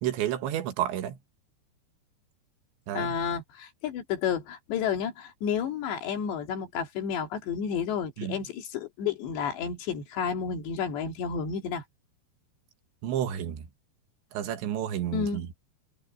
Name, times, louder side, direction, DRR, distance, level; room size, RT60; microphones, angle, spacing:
voice 1, 0.0-1.2 2.9-3.2 8.2-8.4 13.0-13.7 14.3-15.5, right 11 dB, 90° right, 4.0 m, -30 dB
voice 2, 2.9-11.8 15.1-15.4, left 7 dB, 75° left, 4.7 m, -31 dB
omnidirectional pair, 5.1 m